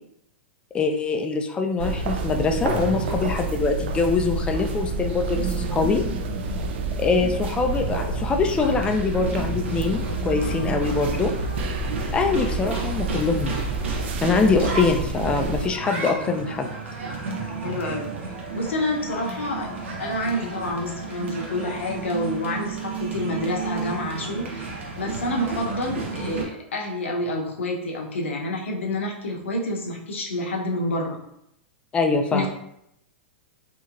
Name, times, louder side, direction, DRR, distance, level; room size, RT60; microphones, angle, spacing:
voice 1, 0.7-6.0 7.0-11.3 12.1-13.6 14.2-16.7 31.9-32.5, left 4 dB, 15° left, 4 dB, 0.3 m, -23 dB
sound 1, 1.8-15.7, right 3 dB, 65° right, 0.4 m, -28 dB
sound 2, 8.6-26.4, right 4 dB, 85° right, 0.8 m, -33 dB
voice 2, 17.6-18.1 18.5-24.7 25.0-31.2 32.3-32.5, left 1 dB, 80° left, 0 dB, 0.7 m, -28 dB
2.9 x 2.8 x 2.4 m, 0.77 s
hypercardioid pair, 115°, 7 cm